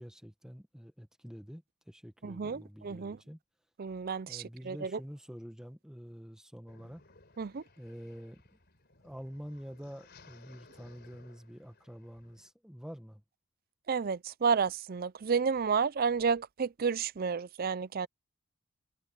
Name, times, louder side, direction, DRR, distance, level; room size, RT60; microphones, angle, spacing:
voice 1, 0.0-3.4 4.3-7.0 7.8-8.4 9.0-13.2, equal, 5° right, 1.3 m, -47 dB
voice 2, 2.2-3.2 3.8-4.9 7.4-7.6 13.9-18.1, right 5 dB, 40° right, 0.4 m, -31 dB
sound 1, 6.7-12.5, left 3 dB, 50° left, 4.2 m, -60 dB
head